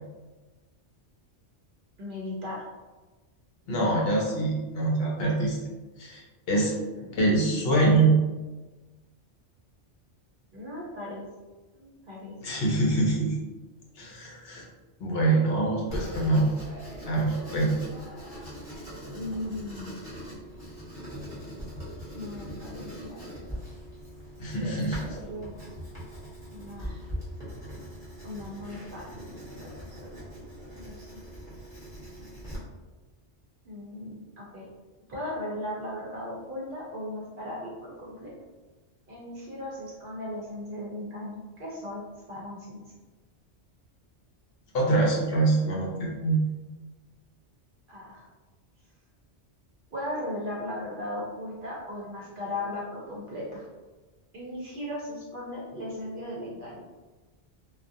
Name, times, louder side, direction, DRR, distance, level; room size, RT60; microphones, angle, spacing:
voice 1, 2.0-2.7 6.9-7.2 10.5-11.3 11.7-12.4 19.0-20.0 22.1-23.6 24.6-24.8 25.1-25.5 26.5-27.1 28.2-29.7 30.0-30.4 30.7-31.2 33.6-34.7 35.1-38.3 39.1-42.0 42.3-42.8 47.9-48.3 49.9-53.7 54.3-56.8, left 1 dB, 55° right, -4 dB, 0.6 m, -37 dB
voice 2, 3.7-5.6 6.0-6.7 7.2-8.2 12.4-13.4 14.0-14.7 15.0-16.5 17.0-17.7 24.4-25.1 44.7-46.4, right 2 dB, 65° left, -3 dB, 0.7 m, -24 dB
Writing, 15.9-32.6, equal, 5° right, 1.0 m, -41 dB
2.3 x 2.1 x 2.6 m, 1.2 s
omnidirectional pair, 1.2 m